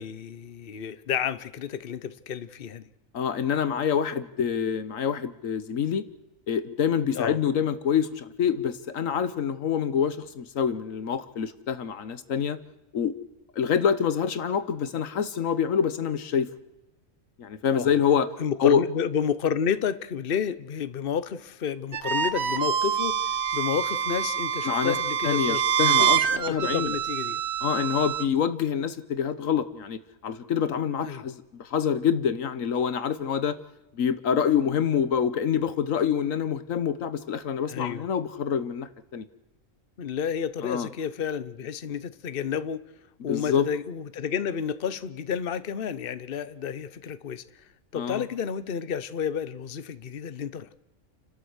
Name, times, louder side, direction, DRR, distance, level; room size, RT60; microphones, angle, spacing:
voice 1, 0.0-2.9 7.1-7.4 17.7-18.0 18.4-27.4 31.0-31.2 37.7-38.1 40.0-42.8 43.2-47.6 47.9-50.8, left 7 dB, 50° left, 1.0 m, -31 dB
voice 2, 3.1-6.0 6.5-12.6 12.9-13.1 13.6-16.5 17.4-18.3 18.6-18.8 24.6-24.9 25.2-26.9 27.6-33.6 33.9-39.3 40.6-40.9 43.3-43.7 47.9-48.2, left 7 dB, 75° left, 1.3 m, -26 dB
sound 1, 21.9-28.2, right 8 dB, 55° right, 1.2 m, -26 dB
29.5 x 12.5 x 8.0 m
omnidirectional pair, 1.4 m